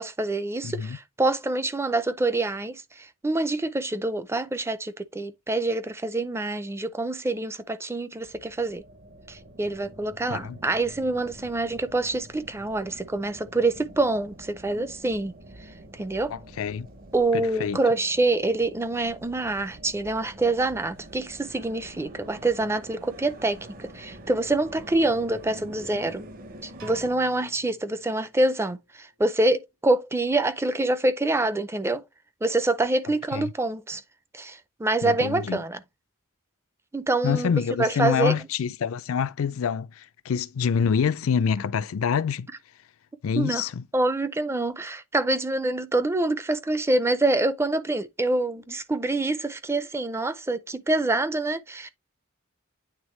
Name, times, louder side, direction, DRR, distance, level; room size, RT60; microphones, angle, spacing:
voice 1, 0.0-8.8 9.3-15.3 15.9-16.3 17.1-26.3 26.6-32.0 32.4-34.0 34.3-35.8 36.9-38.4 43.3-43.6 43.9-51.9, right 2 dB, 10° right, 0.5 m, -26 dB
voice 2, 0.6-1.0 10.3-10.6 16.3-16.9 17.3-17.8 33.3-33.5 35.0-35.6 37.2-42.5 43.2-43.8, left 7 dB, 70° left, 0.4 m, -26 dB
sound 1, 8.2-27.1, right 1 dB, 45° right, 0.9 m, -46 dB
sound 2, 26.8-28.7, right 3 dB, 65° right, 3.5 m, -48 dB
8.8 x 3.5 x 3.1 m
head